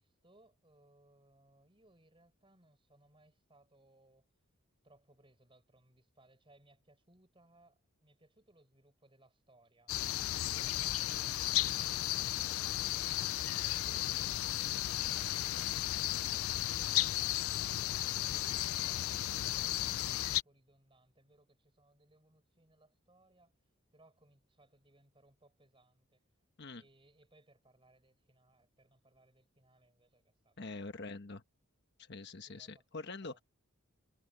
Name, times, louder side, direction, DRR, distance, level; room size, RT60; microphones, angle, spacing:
voice 1, 0.0-4.3 4.8-9.9 10.3-14.4 14.7-23.5 23.9-26.2 26.7-31.0 32.5-33.4, right 1 dB, 25° right, 5.9 m, -66 dB
sound 1, 9.9-20.4, left 14 dB, 80° left, 0.4 m, -34 dB
voice 2, 30.6-31.4 32.0-33.4, left 3 dB, 55° left, 1.2 m, -45 dB
head